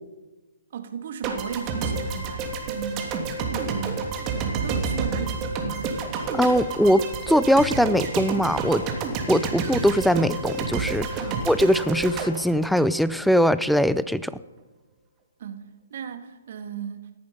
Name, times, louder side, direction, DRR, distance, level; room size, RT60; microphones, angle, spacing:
voice 1, 0.7-3.2 3.5-5.9 11.2-11.4 15.4-17.1, right 8 dB, 55° right, 1.8 m, -35 dB
sound 1, 1.2-13.4, right 4 dB, 25° right, 2.9 m, -29 dB
voice 2, 6.4-8.8 9.3-14.3, equal, ahead, 0.5 m, -21 dB
18.5 x 14.0 x 5.4 m
hypercardioid pair, 140°, 0 cm